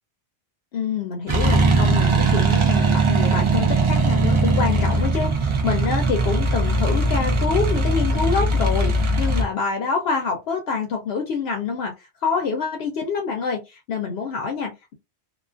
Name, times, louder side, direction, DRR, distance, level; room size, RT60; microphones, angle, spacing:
voice 1, 0.7-11.9 12.2-14.9, left 5 dB, 70° left, 0.8 m, -26 dB
sound 1, 1.3-9.4, right 2 dB, 45° right, 0.4 m, -20 dB
2.4 x 2.3 x 2.3 m
omnidirectional pair, 1.1 m